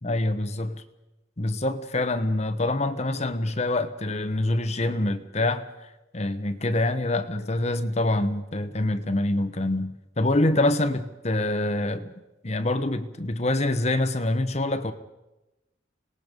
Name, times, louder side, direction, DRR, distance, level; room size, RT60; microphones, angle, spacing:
voice 1, 0.0-0.7 1.4-12.1 12.4-14.9, left 2 dB, 35° left, 1.1 m, -26 dB
26.5 x 19.5 x 5.3 m
head